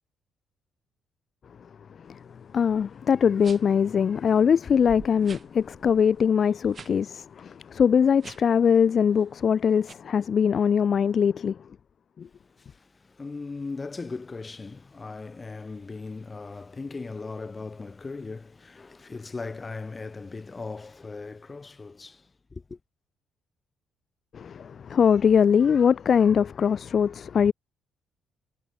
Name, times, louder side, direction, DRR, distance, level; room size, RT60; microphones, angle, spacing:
voice 1, 2.5-11.6 12.2-12.3 24.3-27.5, left 7 dB, 45° left, 0.5 m, -22 dB
sound 1, 2.7-2.9 3.4-3.8 4.3-4.4 4.6-6.9 7.2-7.4 8.1-8.6 9.0-9.4 9.8-9.9, right 6 dB, 40° right, 5.3 m, -46 dB
voice 2, 12.3-22.8, left 3 dB, 30° left, 3.2 m, -38 dB
figure-of-eight pair, 45°, 0 cm